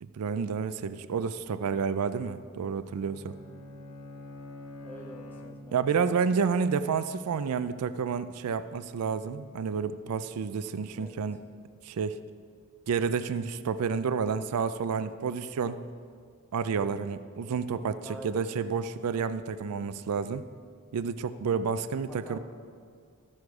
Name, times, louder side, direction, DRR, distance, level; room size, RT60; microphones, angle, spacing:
voice 1, 0.0-3.4 5.7-11.4 11.8-12.2 12.9-15.8 16.5-20.4 20.9-22.4, right 6 dB, 85° right, 13 dB, 0.4 m, -30 dB
Bowed string instrument, 2.5-6.1, left 1 dB, 90° left, 0.9 m, -46 dB
voice 2, 4.8-6.0 11.0-11.2 18.0-18.4 22.2-22.4, equal, 10° left, 0 dB, 1.0 m, -46 dB
14.0 x 6.4 x 4.8 m, 2.1 s
head